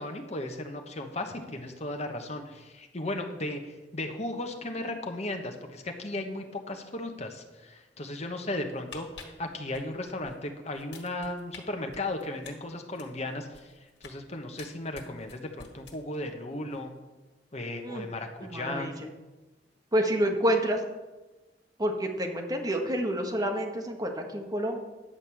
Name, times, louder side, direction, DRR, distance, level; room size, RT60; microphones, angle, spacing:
voice 1, 0.0-13.7 14.0-16.9 17.5-18.9, left 1 dB, 40° left, 4 dB, 1.2 m, -36 dB
sound 1, 8.7-10.4 10.7-11.6 11.9-14.2 14.6-16.3 16.6-16.8, left 5 dB, 80° left, 1.8 m, -49 dB
voice 2, 18.4-18.9 19.9-20.8 21.8-24.8, right 1 dB, 20° right, 3 dB, 1.3 m, -28 dB
10.0 x 5.3 x 7.6 m, 1.2 s
head